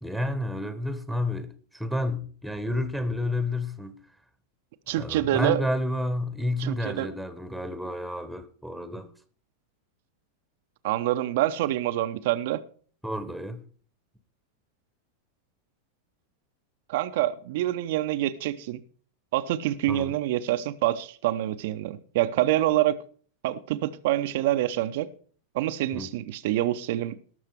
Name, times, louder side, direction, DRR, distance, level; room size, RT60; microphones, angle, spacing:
voice 1, 0.0-4.0 5.0-9.1 13.0-13.6 19.9-20.1 25.9-26.1, left 1 dB, ahead, 1.3 m, -30 dB
voice 2, 4.9-5.6 6.6-7.1 10.8-12.6 16.9-18.8 19.3-23.0 23.4-25.1 25.5-27.2, right 14 dB, 50° right, 0.8 m, -26 dB
18.5 x 6.6 x 4.7 m
figure-of-eight pair, 90°, 0 cm